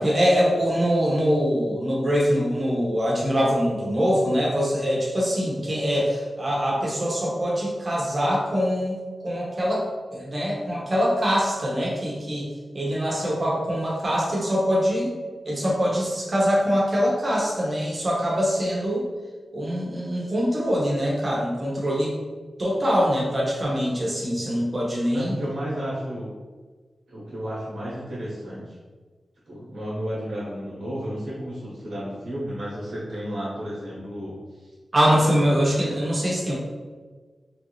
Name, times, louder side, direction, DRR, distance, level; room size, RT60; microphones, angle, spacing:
voice 1, 0.0-9.9 10.1-12.5 12.7-15.1 15.4-19.0 19.5-22.1 22.6-25.4 34.9-36.6, equal, 40° right, -3 dB, 1.0 m, -23 dB
voice 2, 25.1-26.3 27.1-28.7 29.5-34.7, equal, 80° right, -8 dB, 1.0 m, -32 dB
3.3 x 2.5 x 3.1 m, 1.4 s
cardioid pair, 65°, 0 cm